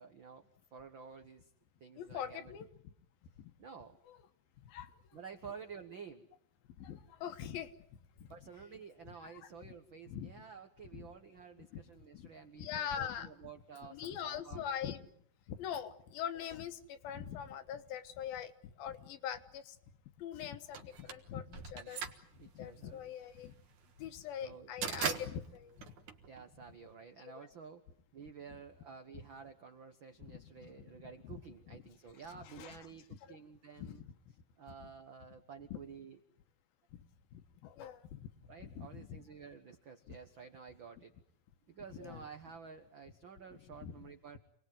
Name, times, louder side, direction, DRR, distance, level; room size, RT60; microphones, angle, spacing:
voice 1, 0.0-1.5 1.8-2.5 3.6-4.0 5.1-6.3 8.3-14.7 21.7-22.0 22.3-23.1 24.4-24.7 26.2-27.8 28.1-34.0 34.6-36.2 38.5-41.1 41.7-44.4, right 6 dB, 85° right, 7 dB, 1.0 m, -51 dB
voice 2, 2.0-2.7 3.4-3.5 4.7-4.9 6.8-7.7 8.2-8.3 9.2-9.3 10.1-10.3 10.9-11.0 11.7-11.8 12.1-12.3 12.6-13.3 13.9-15.0 15.5-19.8 20.2-22.0 22.5-23.6 24.0-25.9 27.4-27.5 30.2-30.7 31.2-31.3 32.3-32.8 33.8-34.1 35.7-35.8 37.3-38.3 38.6-39.2 40.1-40.2 42.0-42.2 43.8-43.9, left 9 dB, 85° left, 10 dB, 3.1 m, -43 dB
sound 1, 20.7-26.9, right 7 dB, 60° right, 2.7 m, -41 dB
27.0 x 19.5 x 9.3 m, 0.70 s
omnidirectional pair, 4.2 m